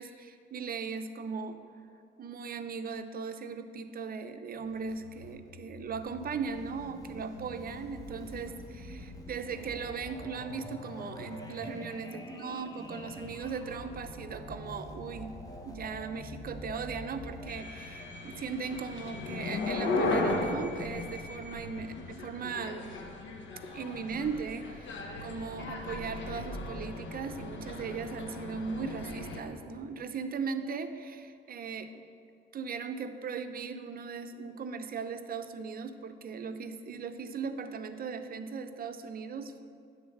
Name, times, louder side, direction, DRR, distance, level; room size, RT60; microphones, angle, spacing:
voice 1, 0.0-1.6 2.2-15.4 15.6-22.9 23.7-31.9 32.5-39.6, right 5 dB, 50° right, 9 dB, 0.6 m, -38 dB
sound 1, 4.6-17.5, left 1 dB, 15° left, 1.0 m, -46 dB
sound 2, 17.5-29.4, left 2 dB, 70° left, 1.1 m, -36 dB
9.2 x 4.0 x 7.0 m, 2.3 s
cardioid pair, 90°, 20 cm